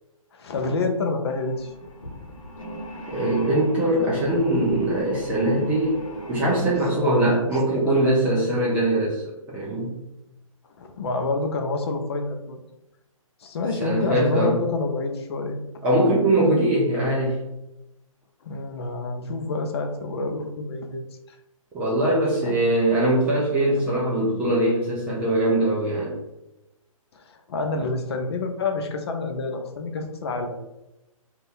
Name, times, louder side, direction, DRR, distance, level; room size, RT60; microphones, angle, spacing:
voice 1, 0.3-1.7 6.9-8.5 10.8-12.6 13.4-15.6 18.4-21.0 22.4-22.6 27.1-30.6, left 3 dB, 50° left, 4 dB, 0.5 m, -28 dB
sound 1, 1.3-6.9, equal, 65° left, 0.9 m, -37 dB
voice 2, 3.1-6.0 6.3-9.2 9.5-9.9 13.8-14.6 15.8-17.4 21.7-26.2, right 1 dB, 10° right, -6 dB, 0.3 m, -22 dB
2.5 x 2.4 x 3.4 m, 0.92 s
hypercardioid pair, 145°, 18 cm